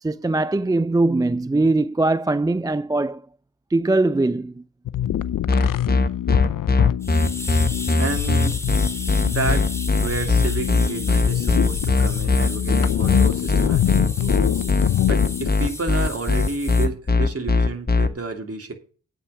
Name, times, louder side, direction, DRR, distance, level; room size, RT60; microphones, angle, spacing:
voice 1, 0.0-3.3 3.7-4.6, right 2 dB, 10° right, 0.4 m, -21 dB
sound 1, 4.9-15.5, left 11 dB, 75° left, 0.6 m, -24 dB
sound 2, 5.5-18.1, left 3 dB, 30° left, 1.1 m, -19 dB
sound 3, 7.0-16.9, left 1 dB, 10° left, 2.2 m, -35 dB
voice 2, 8.0-8.6 9.0-9.7 10.0-18.7, right 3 dB, 45° right, 2.8 m, -30 dB
8.5 x 5.6 x 7.6 m
supercardioid pair, 40°, 33 cm